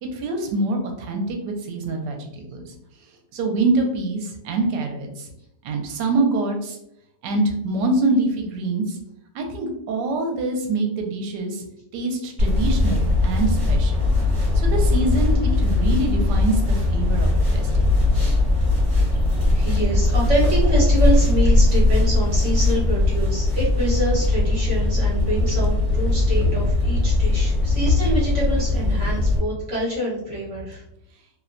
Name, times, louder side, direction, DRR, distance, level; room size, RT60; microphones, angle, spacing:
voice 1, 0.0-2.7 3.3-5.3 5.6-6.8 7.2-9.0 9.3-11.6 11.9-18.0, right 2 dB, 80° right, 3 dB, 1.2 m, -25 dB
sound 1, 12.4-29.4, left 2 dB, 30° right, 1.1 m, -19 dB
voice 2, 19.5-30.8, right 1 dB, 50° right, -7 dB, 1.2 m, -26 dB
3.0 x 2.1 x 2.4 m, 0.78 s
omnidirectional pair, 1.8 m